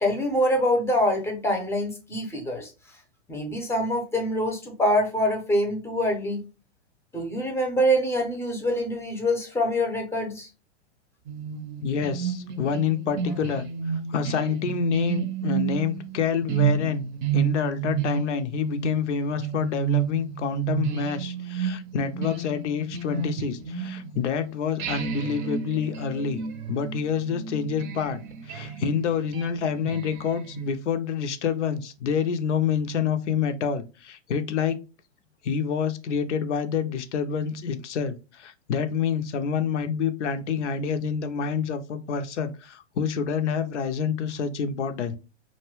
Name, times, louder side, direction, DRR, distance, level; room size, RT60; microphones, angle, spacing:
voice 1, 0.0-2.7 3.3-6.4 7.1-10.5, equal, 10° left, 0.6 m, -25 dB
sound 1, 11.3-24.3 24.8-30.7, right 7 dB, 45° right, 0.5 m, -31 dB
voice 2, 11.8-13.7 14.1-17.1 17.3-26.4 26.7-34.8 35.4-45.1, left 6 dB, 80° left, 0.6 m, -27 dB
2.6 x 2.1 x 2.9 m
hypercardioid pair, 120°, 35 cm